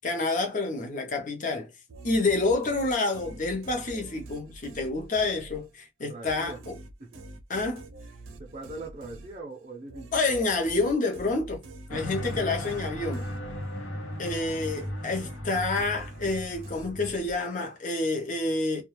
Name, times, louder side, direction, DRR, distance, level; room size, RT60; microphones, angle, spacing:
voice 1, 0.0-1.7 2.0-6.7 7.5-7.8 10.1-11.6 11.9-13.3 14.2-18.8, left 3 dB, 40° left, 0.6 m, -28 dB
sound 1, 1.9-5.9 6.3-13.9 14.3-17.7, right 2 dB, 85° right, 0.5 m, -46 dB
voice 2, 6.1-6.6 7.0-7.2 8.4-10.2 11.9-12.4, right 2 dB, 35° right, 0.5 m, -42 dB
sound 2, 11.9-17.2, left 1 dB, 80° left, 0.9 m, -36 dB
2.3 x 2.2 x 3.0 m
head